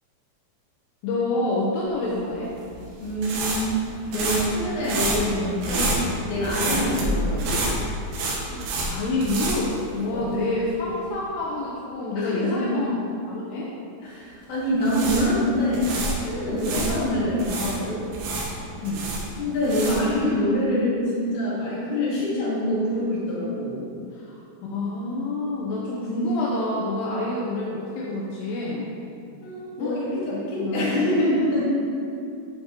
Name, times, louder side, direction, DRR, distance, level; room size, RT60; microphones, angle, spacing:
voice 1, 1.0-2.5 6.7-6.9 8.4-12.9 13.3-13.7 16.6-16.8 18.8-19.1 24.1-28.9 29.8-30.0 30.3-30.9, left 2 dB, 80° left, -5 dB, 2.8 m, -28 dB
sound 1, 2.4-10.4 10.7-10.9 14.6-17.0 17.4-20.2, right 2 dB, 75° right, 3.2 m, -28 dB
voice 2, 3.0-3.8 4.1-6.0 6.3-7.7 10.1-10.4 12.2-12.8 13.6-13.7 14.0-15.9 16.2-18.0 19.4-23.9 29.4-31.6, left 1 dB, 50° left, -8 dB, 3.1 m, -25 dB
12.5 x 5.1 x 2.9 m, 2.5 s
omnidirectional pair, 4.9 m